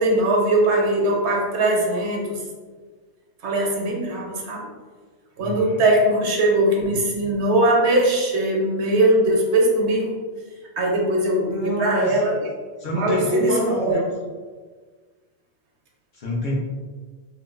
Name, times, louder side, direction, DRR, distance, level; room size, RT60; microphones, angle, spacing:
voice 1, 0.0-2.4 3.4-4.6 5.4-10.1 10.8-12.4 12.9-14.0, right 1 dB, 80° right, -1 dB, 1.0 m, -20 dB
voice 2, 5.4-5.8 11.4-12.2 12.8-14.1 16.1-16.6, equal, 55° left, -5 dB, 0.7 m, -26 dB
3.7 x 2.3 x 2.4 m, 1.5 s
omnidirectional pair, 1.1 m